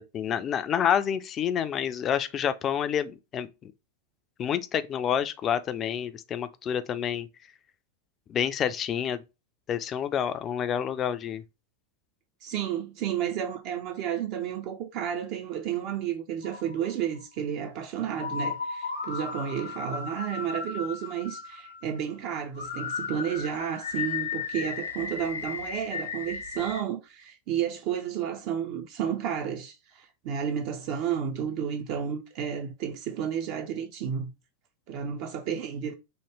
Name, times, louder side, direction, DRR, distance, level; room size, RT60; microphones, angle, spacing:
voice 1, 0.1-3.7 4.4-7.3 8.3-9.2 9.7-11.4, left 9 dB, 30° left, 0.3 m, -28 dB
voice 2, 12.4-34.3 34.9-35.9, right 8 dB, 45° right, 0.4 m, -32 dB
sound 1, 16.4-17.2 18.1-22.2 22.6-26.8, left 5 dB, 75° left, 0.6 m, -35 dB
3.1 x 2.2 x 3.2 m
figure-of-eight pair, 90°, 0 cm